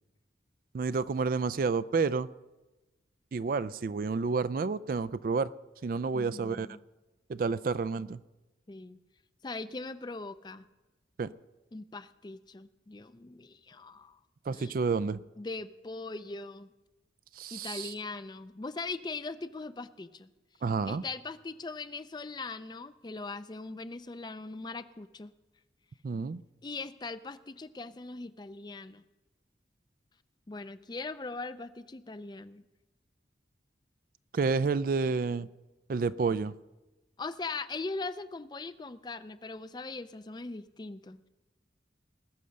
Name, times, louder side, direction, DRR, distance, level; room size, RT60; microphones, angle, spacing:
voice 1, 0.7-2.3 3.3-5.5 5.8-6.7 7.3-8.2 11.2-11.3 14.5-15.2 17.3-17.9 20.6-21.0 26.0-26.4 34.3-35.5 35.9-36.6, right 4 dB, 50° right, 17 dB, 0.3 m, -30 dB
voice 2, 6.1-6.8 8.7-9.0 9.4-10.6 11.7-14.2 14.6-14.8 15.4-16.7 17.5-20.3 20.9-25.3 26.6-29.0 30.5-32.7 37.2-41.3, left 3 dB, 25° left, 13 dB, 0.4 m, -40 dB
20.0 x 6.9 x 6.4 m, 1.1 s
head